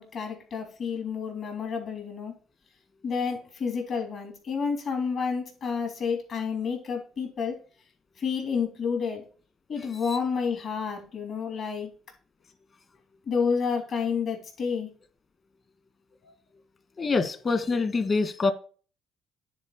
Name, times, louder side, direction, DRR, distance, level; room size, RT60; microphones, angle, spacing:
voice 1, 0.0-2.3 3.0-7.6 8.2-9.2 9.7-11.9 13.3-14.9, left 6 dB, 55° left, 3.3 m, -30 dB
voice 2, 17.0-18.5, left 4 dB, 40° left, 1.6 m, -25 dB
9.6 x 4.4 x 4.9 m
supercardioid pair, 75°, 0 cm